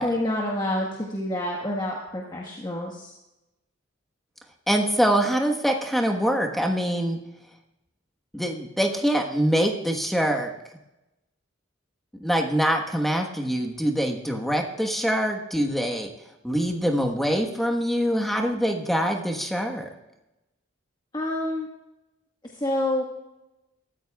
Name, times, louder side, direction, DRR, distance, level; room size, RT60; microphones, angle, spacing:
voice 1, 0.0-3.1 21.1-21.7 22.6-23.0, left 1 dB, 20° left, -1 dB, 1.4 m, -27 dB
voice 2, 4.7-7.2 8.3-10.5 12.2-16.1 16.4-19.9, equal, ahead, 2 dB, 1.3 m, -24 dB
23.0 x 14.0 x 2.4 m, 0.96 s
head